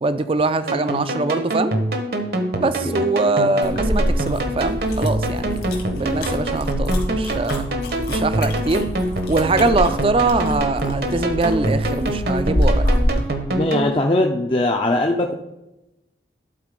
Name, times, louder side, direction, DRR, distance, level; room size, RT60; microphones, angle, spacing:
voice 1, 0.0-1.7 2.6-7.7 8.1-8.8 9.3-12.9, right 3 dB, 30° right, 12 dB, 0.4 m, -22 dB
sound 1, 0.7-13.9, right 1 dB, 60° right, 1.1 m, -25 dB
sound 2, 3.6-13.3, equal, 70° left, 1.8 m, -25 dB
voice 2, 13.5-15.3, left 2 dB, 30° left, 2 dB, 0.5 m, -21 dB
11.5 x 4.2 x 5.2 m, 0.95 s
head